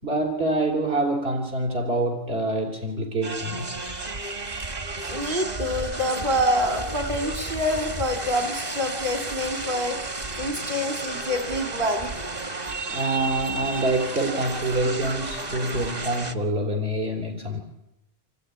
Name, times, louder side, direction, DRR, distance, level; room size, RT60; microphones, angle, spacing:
voice 1, 0.0-3.8 8.9-9.0 12.9-17.6, right 1 dB, 70° right, 2 dB, 3.7 m, -26 dB
sound 1, 3.2-16.3, right 3 dB, 40° right, 1.6 m, -32 dB
voice 2, 5.0-10.0 10.4-12.1, left 1 dB, 55° right, 6 dB, 3.6 m, -26 dB
27.0 x 18.0 x 9.8 m, 0.85 s
omnidirectional pair, 1.1 m